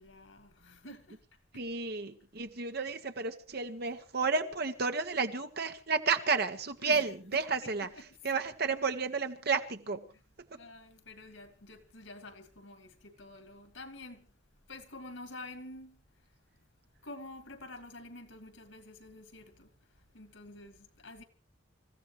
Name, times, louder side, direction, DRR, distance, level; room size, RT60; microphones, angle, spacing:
voice 1, 0.0-1.7 3.9-4.0 6.8-7.0 7.3-8.2 10.5-14.3 14.7-16.7 17.0-21.2, left 2 dB, 70° left, 2.4 m, -49 dB
voice 2, 1.5-7.9 8.2-10.1, right 4 dB, 55° right, 1.4 m, -32 dB
27.0 x 15.0 x 3.3 m
head